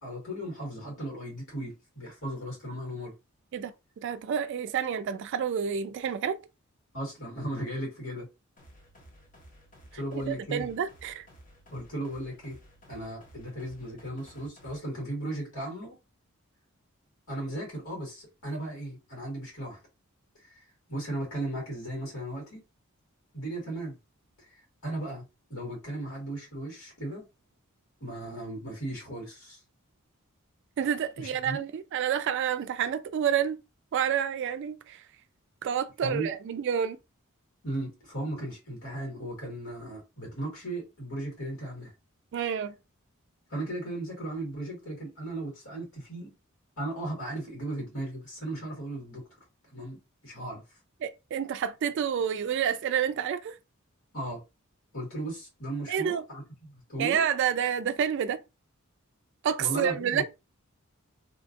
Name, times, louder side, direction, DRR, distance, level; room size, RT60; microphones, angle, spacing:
voice 1, 0.0-3.1 6.9-8.3 9.9-10.7 11.7-12.6 12.9-16.0 17.3-19.8 20.4-22.6 23.3-24.0 24.4-25.2 25.5-27.2 28.0-29.6 31.2-31.6 36.0-36.3 37.6-41.9 43.5-46.3 46.8-49.2 49.7-50.6 54.1-54.4 54.9-57.2 59.6-60.2, right 1 dB, 85° left, 1.9 m, -36 dB
voice 2, 3.5-6.4 9.9-11.3 30.8-33.6 33.9-35.0 35.6-37.0 42.3-42.7 51.0-53.6 55.9-56.2 57.0-58.4 59.4-60.2, right 8 dB, 55° right, 0.3 m, -29 dB
sound 1, 8.6-14.8, equal, 40° left, 0.9 m, -55 dB
3.0 x 2.4 x 2.5 m
head